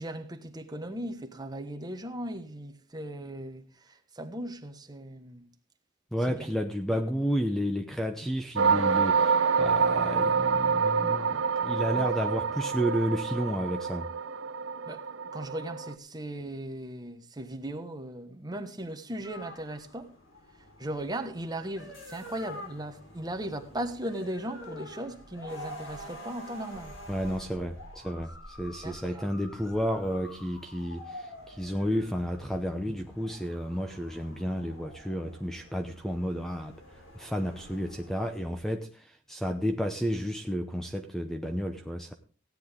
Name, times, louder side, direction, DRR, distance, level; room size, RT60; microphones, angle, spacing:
voice 1, 0.0-5.4 6.3-6.5 8.2-8.3 11.9-12.1 14.9-20.1 20.8-26.9 28.8-29.3 32.9-33.0, right 1 dB, 20° right, 1.4 m, -38 dB
voice 2, 6.1-14.1 27.1-36.7 37.1-42.1, equal, ahead, 0.8 m, -31 dB
sound 1, 8.6-15.9, right 5 dB, 80° right, 0.7 m, -27 dB
sound 2, 19.2-38.6, left 1 dB, 70° left, 4.0 m, -47 dB
16.0 x 10.0 x 3.6 m
head